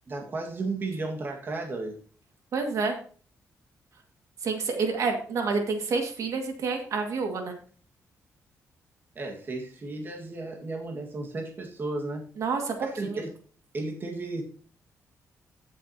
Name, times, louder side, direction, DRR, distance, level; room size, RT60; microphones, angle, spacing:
voice 1, 0.1-2.0 9.2-12.2 12.8-13.3 13.7-14.4, right 2 dB, 35° right, 1 dB, 1.8 m, -34 dB
voice 2, 2.5-3.0 4.4-7.6 12.4-13.2, right 4 dB, 65° right, 3 dB, 2.1 m, -28 dB
16.0 x 7.2 x 2.9 m, 0.42 s
cardioid pair, 125°, 6 cm